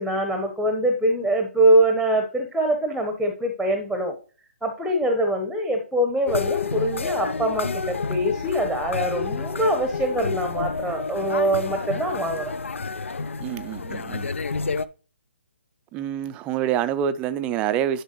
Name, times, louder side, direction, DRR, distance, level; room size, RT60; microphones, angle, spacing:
voice 1, 0.0-4.2 4.6-12.5, right 1 dB, ahead, 0.9 m, -23 dB
sound 1, 6.3-14.9, left 4 dB, 70° left, 0.5 m, -29 dB
voice 2, 13.4-14.3 15.9-18.0, right 10 dB, 15° right, 0.5 m, -26 dB
11.0 x 4.4 x 3.0 m
figure-of-eight pair, 140°, 7 cm